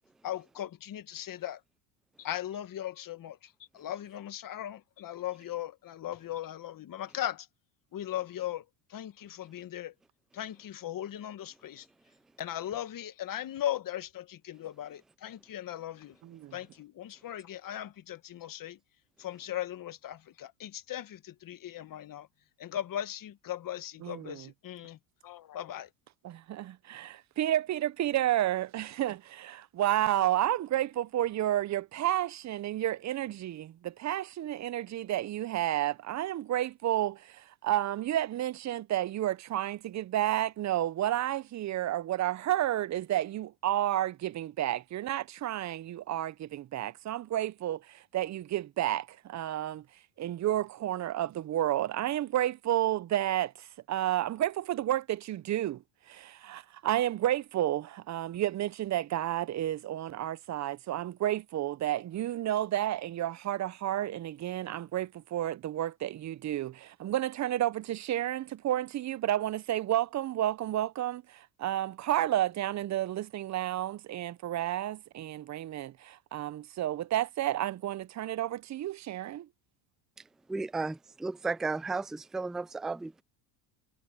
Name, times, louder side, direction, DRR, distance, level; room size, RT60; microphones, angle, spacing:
voice 1, 0.2-1.6 2.2-7.5 7.9-8.6 8.9-9.9 10.3-11.8 12.4-16.1 16.5-18.8 19.2-22.3 22.6-25.9, left 12 dB, 40° left, 1.6 m, -38 dB
voice 2, 16.2-16.5 24.0-24.5 26.2-49.8 50.2-55.8 56.1-79.5, right 13 dB, 35° right, 0.7 m, -31 dB
voice 3, 80.5-83.2, right 3 dB, ahead, 0.3 m, -34 dB
supercardioid pair, 95°, 49 cm